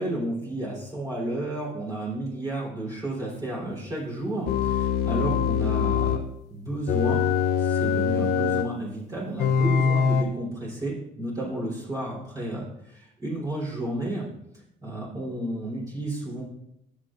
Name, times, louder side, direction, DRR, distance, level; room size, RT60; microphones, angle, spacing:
voice 1, 0.0-6.2 6.5-7.2 7.6-14.3 14.8-16.4, right 1 dB, 20° right, -4 dB, 3.6 m, -32 dB
sound 1, 4.5-6.3 6.9-8.7 9.4-10.2, left 7 dB, 75° left, 0.7 m, -23 dB
19.0 x 6.6 x 2.5 m, 0.80 s
cardioid pair, 110°, 17 cm